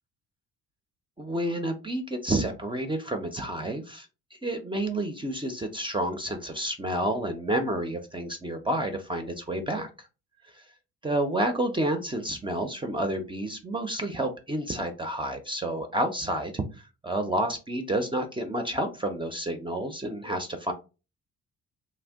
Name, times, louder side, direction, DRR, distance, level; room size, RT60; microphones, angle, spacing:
voice 1, 1.2-4.1 4.4-10.1 10.6-10.7 11.0-20.7, right 1 dB, 15° right, 5 dB, 0.4 m, -30 dB
2.6 x 2.1 x 3.4 m, 0.31 s
cardioid pair, 90°, 30 cm